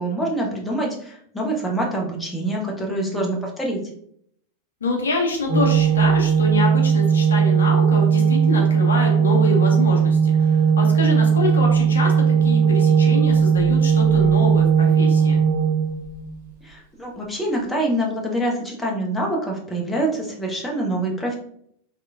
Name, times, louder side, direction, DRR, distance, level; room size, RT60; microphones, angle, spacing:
voice 1, 0.0-3.8 16.6-21.4, right 1 dB, 5° left, -2 dB, 0.6 m, -25 dB
voice 2, 2.9-3.3 4.8-15.4, left 2 dB, 70° left, 0 dB, 0.6 m, -26 dB
Organ, 5.5-16.4, right 7 dB, 45° right, 1.1 m, -17 dB
3.0 x 2.1 x 2.3 m, 0.66 s
figure-of-eight pair, 90°, 0 cm